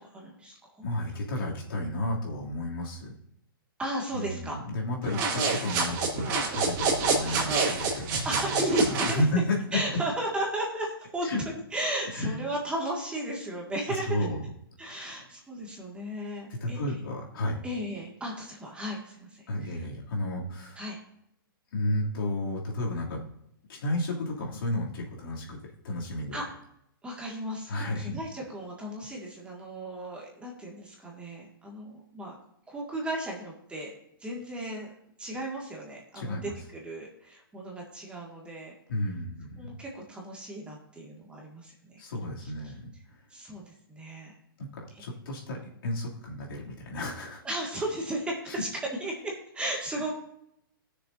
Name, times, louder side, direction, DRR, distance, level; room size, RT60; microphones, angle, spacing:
voice 1, 0.0-0.7 3.8-4.6 7.2-7.5 8.2-9.2 9.7-14.2 14.8-16.8 17.6-19.7 20.8-21.0 26.3-26.4 27.0-32.3 32.7-33.9 34.2-34.9 35.2-38.7 39.6-42.0 42.4-42.5 43.3-44.3 47.4-48.7 49.0-50.2, right 1 dB, 10° right, -2 dB, 2.0 m, -35 dB
voice 2, 0.8-3.1 4.1-8.7 9.1-9.8 11.2-11.4 12.1-12.4 13.9-14.4 14.8-15.3 16.5-17.7 19.5-20.8 21.7-23.2 23.7-26.4 27.7-28.1 36.1-36.5 38.9-39.7 42.0-43.2 44.6-47.4 48.5-48.6, left 1 dB, 70° left, -2 dB, 2.8 m, -32 dB
sound 1, 5.0-9.2, right 4 dB, 35° right, 2.8 m, -27 dB
18.0 x 6.7 x 2.7 m, 0.75 s
hypercardioid pair, 145°, 12 cm